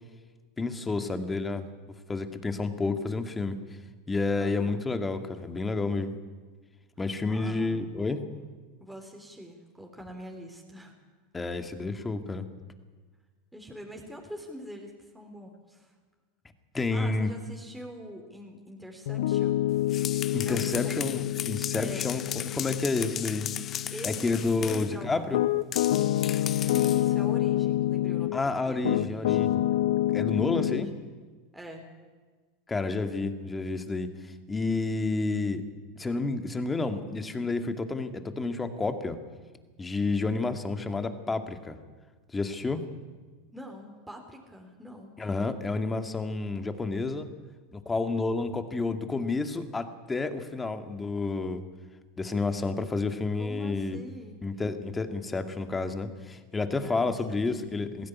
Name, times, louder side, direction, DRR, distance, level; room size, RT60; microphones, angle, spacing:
voice 1, 0.6-1.7 2.1-3.6 4.1-6.1 7.0-8.2 11.3-12.4 16.7-17.3 20.3-22.2 22.5-23.5 24.0-25.4 28.3-29.6 30.1-30.9 32.7-34.1 34.5-35.6 36.0-39.2 39.8-41.8 42.3-42.8 45.2-47.3 47.7-51.6 52.2-54.0 54.4-58.1, left 3 dB, 15° left, 7 dB, 2.2 m, -30 dB
voice 2, 4.4-4.8 7.3-8.4 8.8-10.9 13.5-15.9 16.9-19.6 20.4-21.3 21.8-22.1 23.9-24.4 24.6-25.4 26.7-29.5 30.5-30.8 31.5-31.8 43.5-45.1 53.3-54.4 56.8-57.7, equal, 5° right, 1 dB, 3.7 m, -44 dB
Piano, 19.1-28.4 28.8-30.8, left 13 dB, 75° left, 0.7 m, -28 dB
sound 1, 19.7-25.0 25.7-27.1, left 9 dB, 35° left, 0.9 m, -36 dB
20.5 x 16.0 x 9.7 m, 1.4 s
hypercardioid pair, 95°, 0 cm